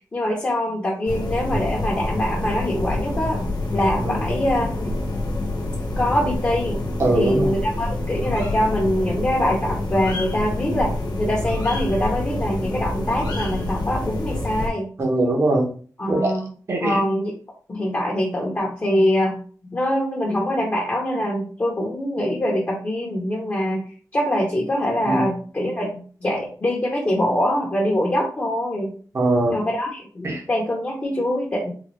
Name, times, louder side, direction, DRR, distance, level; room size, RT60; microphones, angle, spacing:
voice 1, 0.1-4.9 6.0-6.8 7.1-10.9 11.2-14.9 16.0-16.5 16.8-17.4 17.7-19.4 19.7-28.9 29.5-31.7, left 1 dB, 30° left, -2 dB, 0.9 m, -24 dB
sound 1, 1.1-14.7, left 2 dB, 90° left, 0.9 m, -27 dB
voice 2, 7.0-7.5 15.0-15.7 16.1-16.3 16.7-17.0 25.1-25.2 29.1-29.6 30.2-30.4, right 2 dB, 45° right, -1 dB, 1.0 m, -21 dB
3.9 x 2.4 x 3.0 m, 0.42 s
wide cardioid pair, 135°, 7 cm